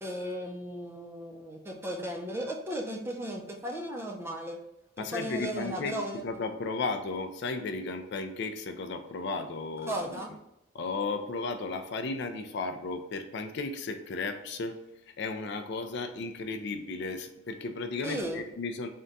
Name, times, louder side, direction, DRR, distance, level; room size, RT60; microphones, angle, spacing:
voice 1, 0.0-4.6 5.1-6.2 9.9-10.3 18.0-18.4, equal, 10° right, 1 dB, 0.4 m, -35 dB
voice 2, 5.0-10.3 10.7-14.8 15.1-18.9, left 3 dB, 55° left, 7 dB, 0.4 m, -34 dB
3.7 x 2.2 x 3.9 m, 0.87 s
head